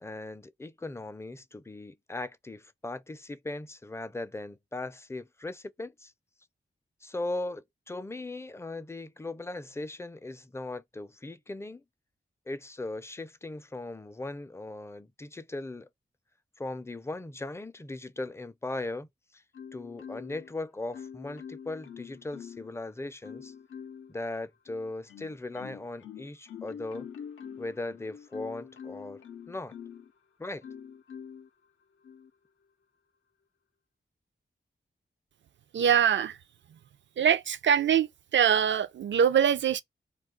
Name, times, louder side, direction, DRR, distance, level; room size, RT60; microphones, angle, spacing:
voice 1, 0.0-6.1 7.0-11.8 12.5-15.9 16.6-19.1 19.3-19.4 19.7-23.5 24.1-27.1 27.6-29.7 30.4-30.6, left 2 dB, 15° left, 0.4 m, -38 dB
Marimba xylophone, 19.5-20.5 20.9-22.8 23.2-24.1 24.7-30.1 30.6-31.5 32.0-32.3, left 7 dB, 80° left, 0.5 m, -45 dB
voice 2, 35.7-36.4 37.2-39.8, right 8 dB, 65° right, 0.4 m, -23 dB
2.3 x 2.3 x 3.7 m
cardioid pair, 45°, 20 cm